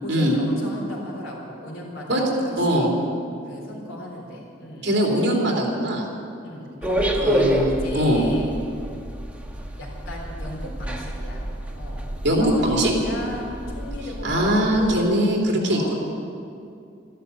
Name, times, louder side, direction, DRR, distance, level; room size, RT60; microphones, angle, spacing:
voice 1, 0.0-2.9 3.5-4.9 6.4-7.4 7.7-8.5 9.8-11.4 11.7-12.0 12.4-15.0 15.7-15.9, left 1 dB, 80° left, -1 dB, 4.0 m, -35 dB
voice 2, 2.6-2.9 4.8-6.1 7.2-8.2 12.2-12.9 14.2-15.9, equal, 65° right, -1 dB, 3.0 m, -21 dB
sound 1, 6.8-15.0, equal, 5° right, 1.2 m, -28 dB
13.0 x 12.5 x 8.1 m, 2.5 s
head